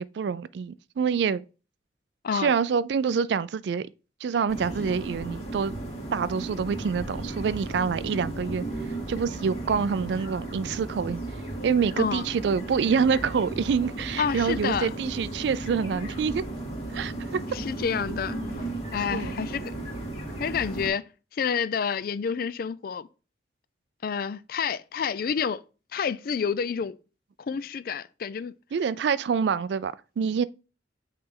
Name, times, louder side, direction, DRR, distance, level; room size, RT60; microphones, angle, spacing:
voice 1, 0.0-1.4 2.3-3.9 4.2-5.7 6.1-8.7 9.1-11.2 11.6-16.4 16.9-17.4 19.1-19.3 28.7-30.4, right 6 dB, 70° right, 0.3 m, -26 dB
sound 1, 4.5-20.9, right 2 dB, 35° left, 2.3 m, -35 dB
voice 2, 14.2-14.9 17.5-18.4 18.9-19.7 20.4-23.1 24.0-25.6 25.9-27.0 27.4-28.5, left 6 dB, 55° left, 0.3 m, -29 dB
8.6 x 3.3 x 3.7 m
head